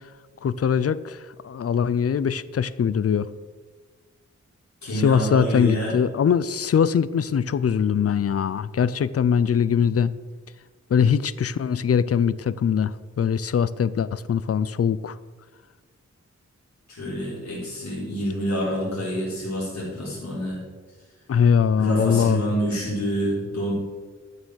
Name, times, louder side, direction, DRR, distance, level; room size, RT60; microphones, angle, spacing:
voice 1, 0.4-1.2 1.4-3.3 4.9-10.1 10.9-15.2 21.3-22.4, left 7 dB, 55° left, 16 dB, 0.5 m, -22 dB
voice 2, 4.8-5.9 16.9-20.6 21.8-23.7, equal, 70° left, -6 dB, 4.1 m, -27 dB
13.0 x 6.8 x 6.3 m, 1.4 s
wide cardioid pair, 100°, 29 cm